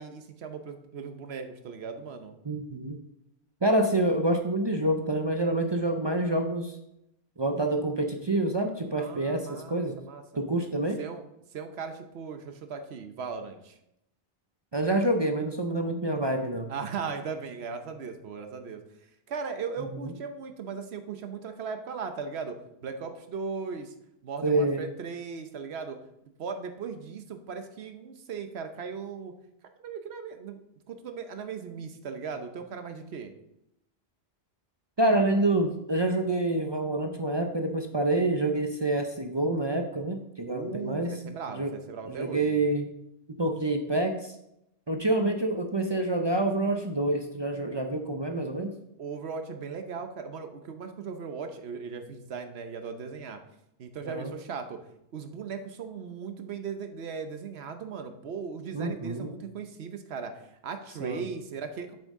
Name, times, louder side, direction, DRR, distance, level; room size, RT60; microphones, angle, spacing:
voice 1, 0.0-2.3 9.0-10.2 11.0-11.2 11.5-13.8 16.7-18.8 19.3-23.9 24.2-26.0 26.4-29.3 29.8-30.6 30.9-33.3 40.5-42.6 49.0-53.4 53.8-54.8 55.1-61.9, right 5 dB, 75° right, 7 dB, 1.1 m, -38 dB
voice 2, 2.4-3.0 3.6-6.7 7.4-10.0 10.4-11.0 14.7-16.7 20.0-20.1 24.4-24.8 35.0-41.2 41.5-41.7 42.1-42.9 43.4-44.3 44.9-48.7 54.0-54.3 58.7-59.3 61.0-61.2, right 2 dB, 30° right, 4 dB, 0.5 m, -27 dB
8.1 x 6.7 x 3.6 m, 0.82 s
omnidirectional pair, 1.1 m